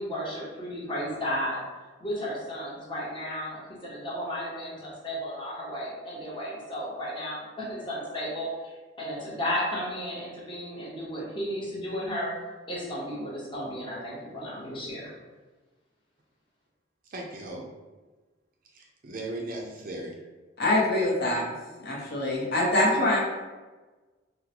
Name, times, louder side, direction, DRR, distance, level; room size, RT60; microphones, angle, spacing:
voice 1, 0.0-1.6 2.0-12.3 12.7-15.1, equal, 25° left, -6 dB, 0.9 m, -34 dB
voice 2, 17.1-17.7 18.7-20.2, right 2 dB, 45° right, 0 dB, 0.5 m, -37 dB
voice 3, 20.6-21.4 21.8-23.2, left 1 dB, 55° left, -4 dB, 0.8 m, -24 dB
3.8 x 2.1 x 2.8 m, 1.3 s
head